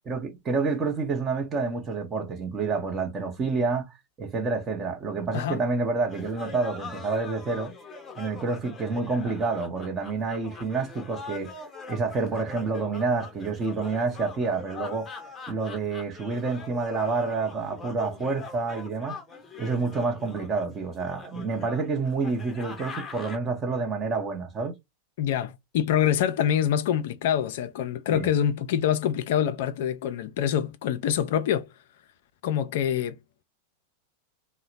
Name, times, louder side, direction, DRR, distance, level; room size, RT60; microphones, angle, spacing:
voice 1, 0.1-3.9 4.2-7.7 8.2-11.5 11.9-15.1 15.5-19.2 19.6-24.7 28.1-28.3, right 4 dB, 25° right, 0.6 m, -28 dB
sound 1, 6.1-23.4, left 5 dB, 20° left, 0.7 m, -43 dB
voice 2, 25.2-31.7 32.4-33.2, left 9 dB, 55° left, 0.3 m, -25 dB
2.7 x 2.0 x 2.5 m
figure-of-eight pair, 90°, 0 cm